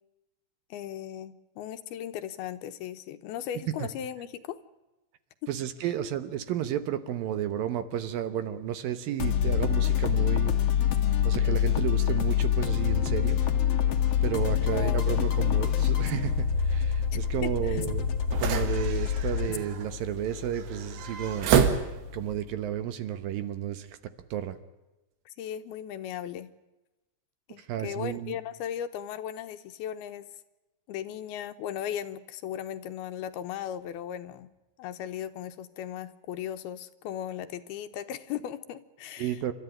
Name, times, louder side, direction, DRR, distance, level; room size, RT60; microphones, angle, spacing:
voice 1, 0.7-4.6 14.6-15.2 17.4-17.8 25.3-26.5 27.5-30.3 30.9-34.5 34.8-39.4, left 10 dB, 75° left, 10 dB, 2.8 m, -37 dB
voice 2, 5.5-10.6 11.2-13.4 14.2-18.1 18.4-21.5 21.8-24.0 24.3-24.6 27.6-28.4 39.2-39.5, right 11 dB, 70° right, 12 dB, 2.5 m, -32 dB
sound 1, 9.2-22.6, left 9 dB, 55° left, 1.8 m, -27 dB
sound 2, 14.6-22.3, right 7 dB, 90° right, 3.9 m, -31 dB
29.0 x 13.5 x 9.9 m, 1.0 s
omnidirectional pair, 4.7 m